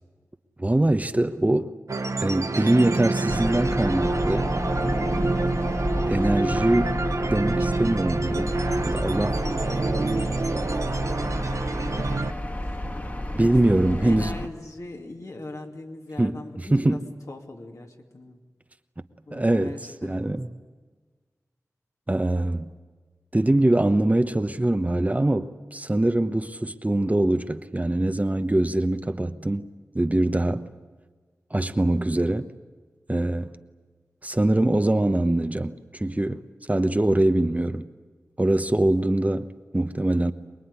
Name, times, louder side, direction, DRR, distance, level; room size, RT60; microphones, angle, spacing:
voice 1, 0.6-1.7 2.2-4.5 4.8-5.0 6.1-8.4 8.8-9.4 13.3-14.4 16.2-16.4 16.7-17.1 19.3-20.5 22.1-22.7 23.3-29.7 29.9-30.7 31.5-32.5 33.1-33.5 34.2-36.4 36.7-37.9 38.4-40.3, right 1 dB, 25° right, 1.0 m, -23 dB
sound 1, 1.9-12.3, right 3 dB, 60° right, 1.0 m, -27 dB
sound 2, 3.3-14.5, left 1 dB, 30° left, 2.1 m, -30 dB
voice 2, 8.3-10.4 10.9-12.2 12.6-12.9 13.4-17.0 17.3-18.4 19.3-20.4 36.0-36.3, left 2 dB, 70° left, 2.7 m, -41 dB
24.0 x 21.0 x 9.8 m
wide cardioid pair, 50°, 6 cm